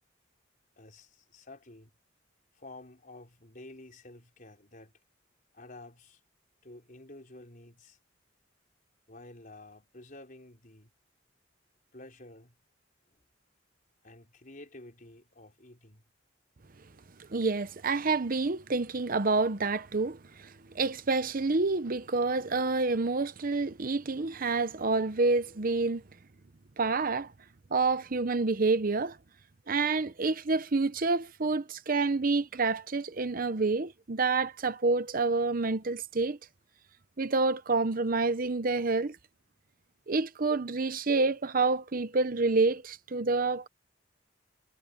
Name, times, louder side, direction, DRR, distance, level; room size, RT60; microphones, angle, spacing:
voice 1, 0.8-1.9 2.5-5.0 5.5-6.2 6.6-8.0 9.1-10.9 11.9-12.6 13.1-13.2 14.0-16.1, left 2 dB, 45° left, 4.8 m, -51 dB
voice 2, 17.2-26.0 26.8-27.3 27.7-29.2 29.7-36.4 37.2-39.2 40.1-43.7, right 3 dB, 45° right, 0.8 m, -28 dB
head